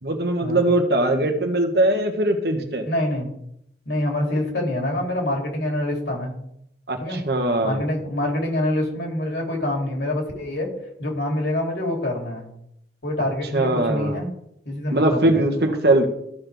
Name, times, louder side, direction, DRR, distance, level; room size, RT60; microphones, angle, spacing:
voice 1, 0.0-2.9 6.9-7.8 13.2-13.3 13.5-14.2 14.9-16.1, right 1 dB, 65° right, 4 dB, 1.4 m, -21 dB
voice 2, 2.8-3.3 3.9-6.3 7.0-7.2 7.6-10.7 11.0-12.5 13.0-14.3 14.6-15.5, left 1 dB, 75° left, -1 dB, 3.0 m, -26 dB
14.0 x 6.0 x 3.5 m, 0.76 s
head